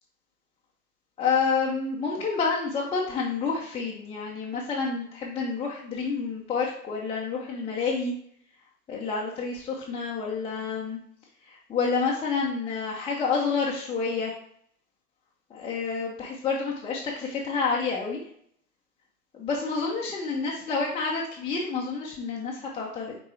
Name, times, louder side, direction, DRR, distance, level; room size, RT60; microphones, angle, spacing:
voice 1, 1.2-8.1 8.9-11.0 11.4-14.3 15.5-18.2 19.3-23.2, left 5 dB, 10° left, -4 dB, 0.7 m, -29 dB
6.4 x 4.6 x 3.2 m, 0.66 s
figure-of-eight pair, 95°, 49 cm